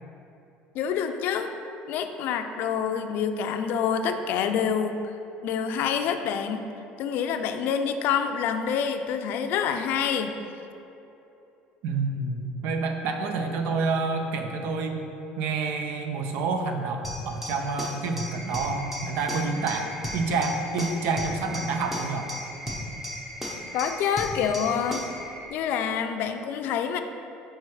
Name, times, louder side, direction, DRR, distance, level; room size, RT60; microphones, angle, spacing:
voice 1, 0.7-1.5 1.9-5.0 5.4-6.7 7.0-10.3 23.7-25.0 25.5-27.0, left 7 dB, 65° left, 7 dB, 0.4 m, -27 dB
voice 2, 11.8-22.3, right 4 dB, 70° right, 5 dB, 0.6 m, -28 dB
sound 1, 17.0-25.2, equal, 10° right, 0.8 m, -36 dB
sound 2, 18.3-25.5, right 1 dB, 25° right, 1.4 m, -42 dB
4.6 x 4.4 x 4.8 m, 2.9 s
cardioid pair, 120°, 4 cm